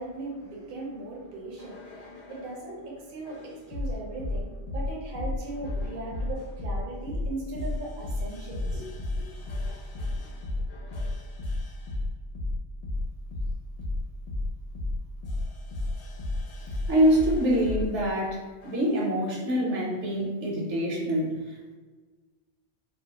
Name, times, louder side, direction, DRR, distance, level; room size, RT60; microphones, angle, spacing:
voice 1, 0.0-8.9 9.2-9.3, right 2 dB, 55° right, -3 dB, 0.8 m, -38 dB
sound 1, 1.6-2.6 3.2-17.9 18.6-19.0, left 2 dB, 70° left, 0.8 m, -33 dB
voice 2, 16.9-21.8, equal, 75° right, -4 dB, 1.0 m, -25 dB
2.3 x 2.3 x 2.8 m, 1.3 s
omnidirectional pair, 1.2 m